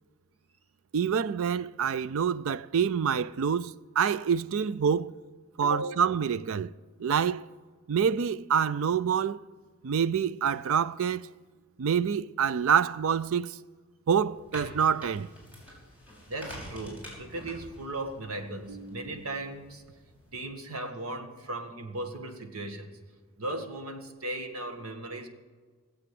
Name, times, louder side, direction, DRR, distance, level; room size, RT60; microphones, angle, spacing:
voice 1, 0.9-5.1 5.6-6.7 7.0-7.4 7.9-9.4 9.8-11.3 11.8-13.6 14.1-15.3, right 7 dB, 70° right, 0.4 m, -26 dB
voice 2, 5.6-6.0 16.3-19.8 20.3-23.0 23.4-25.3, right 2 dB, 90° right, 1.7 m, -37 dB
sound 1, 14.2-20.4, equal, 10° right, 5.9 m, -47 dB
18.0 x 7.9 x 7.8 m
head